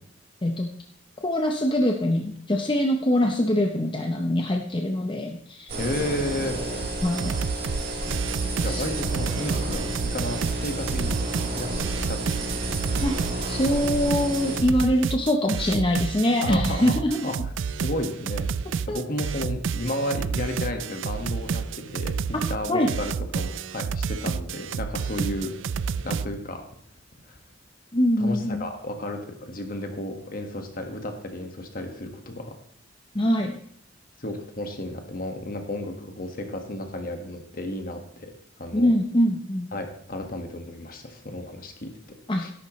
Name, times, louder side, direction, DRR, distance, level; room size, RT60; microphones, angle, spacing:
voice 1, 1.2-5.7 7.0-7.4 8.7-8.8 13.0-13.1 13.5-17.3 18.9-19.0 22.7-22.9 27.9-28.7 33.1-33.6 38.7-39.7 42.3-42.5, left 1 dB, 25° left, 3 dB, 0.8 m, -23 dB
sound 1, 5.7-14.6, right 2 dB, 50° right, 3.5 m, -30 dB
voice 2, 5.8-6.6 8.6-11.2 11.6-13.0 16.4-17.5 17.8-25.5 26.0-26.6 27.3-27.4 28.2-32.5 34.2-38.3 38.6-38.9 39.7-41.9 42.4-42.5, left 1 dB, 50° left, 4 dB, 1.6 m, -33 dB
sound 2, 6.8-6.9 7.2-7.8 8.1-26.3, right 6 dB, 80° right, 0.4 m, -30 dB
13.0 x 11.0 x 3.2 m, 0.64 s
head